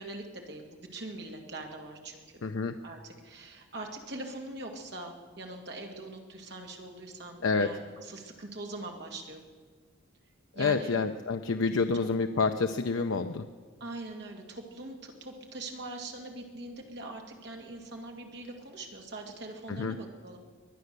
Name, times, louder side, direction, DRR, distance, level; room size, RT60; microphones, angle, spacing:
voice 1, 0.0-2.4 2.8-9.4 10.5-10.9 12.0-12.1 13.8-20.4, right 2 dB, 55° right, 2 dB, 2.1 m, -42 dB
voice 2, 2.4-2.7 7.4-7.7 10.6-13.5 19.7-20.0, left 4 dB, 75° left, 7 dB, 0.6 m, -28 dB
22.5 x 9.5 x 6.7 m, 1.5 s
head